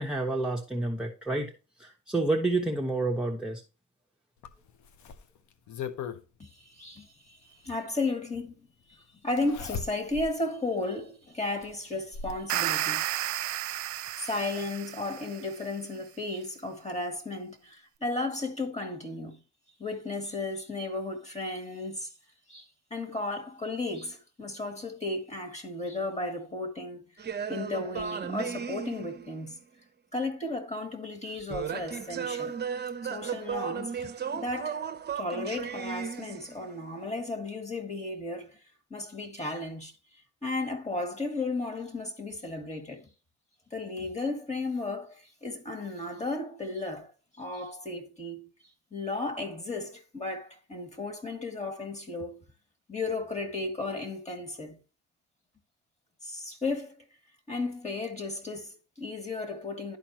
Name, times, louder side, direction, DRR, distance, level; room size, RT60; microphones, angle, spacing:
voice 1, 0.0-1.5 1.8-3.6, right 2 dB, 5° right, 1.0 m, -29 dB
Zipper (clothing), 4.4-6.2 7.6-7.7 9.4-10.3 10.8-10.9 11.6-12.4 13.6-13.7 14.1-14.2, left 7 dB, 70° left, 0.9 m, -39 dB
voice 2, 6.4-7.4 7.6-8.5 8.9-13.1 14.2-19.4 19.8-22.1 22.5-22.6 22.9-27.0 27.5-29.6 30.1-32.6 33.0-34.9 35.2-38.6 38.9-39.9 40.4-43.1 43.7-47.1 47.4-48.5 48.9-52.4 52.9-54.8 56.2-57.0 57.5-60.0, left 2 dB, 20° left, 2.2 m, -34 dB
sound 1, 12.3-15.5, right 14 dB, 70° right, 0.6 m, -32 dB
sound 2, 27.2-29.6 31.5-36.8, right 7 dB, 35° right, 0.8 m, -35 dB
11.5 x 4.4 x 2.9 m
cardioid pair, 90°, 30 cm